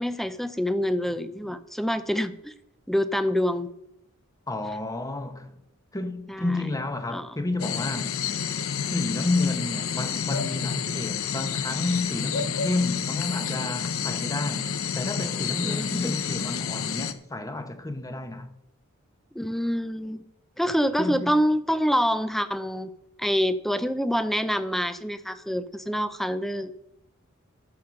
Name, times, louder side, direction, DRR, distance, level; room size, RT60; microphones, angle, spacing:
voice 1, 0.0-2.5 2.9-3.7 6.3-6.7 7.1-7.4 15.6-16.2 19.3-20.2 20.6-22.9 23.2-26.7, equal, ahead, 0.6 m, -26 dB
voice 2, 4.5-5.5 5.9-8.2 8.9-18.5 21.0-21.3, left 2 dB, 15° left, 1.0 m, -30 dB
sound 1, 7.6-17.1, left 7 dB, 80° left, 0.8 m, -29 dB
13.5 x 5.6 x 6.4 m
head